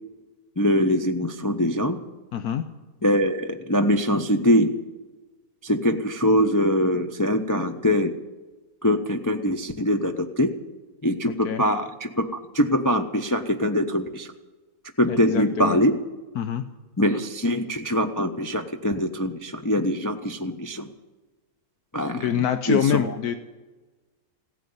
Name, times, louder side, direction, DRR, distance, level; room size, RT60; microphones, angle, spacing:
voice 1, 0.6-2.0 3.0-4.7 5.6-8.1 8.8-10.5 11.0-12.3 12.5-14.3 15.0-16.0 17.0-20.9 21.9-23.2, equal, 25° left, 5 dB, 0.4 m, -23 dB
voice 2, 2.3-2.6 11.4-11.6 15.1-15.8 16.4-16.6 22.1-23.4, left 9 dB, 80° left, 9 dB, 1.3 m, -25 dB
16.0 x 9.3 x 9.4 m, 1.2 s
omnidirectional pair, 1.6 m